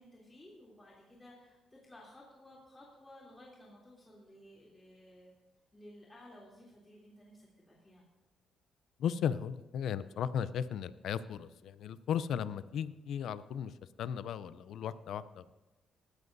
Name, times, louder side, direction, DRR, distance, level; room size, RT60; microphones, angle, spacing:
voice 1, 0.0-5.3 5.7-8.0, left 1 dB, 15° left, -5 dB, 3.0 m, -56 dB
voice 2, 9.0-15.4, left 8 dB, 75° left, 15 dB, 0.5 m, -36 dB
19.0 x 13.0 x 2.7 m, 1.1 s
cardioid pair, 90°, 0 cm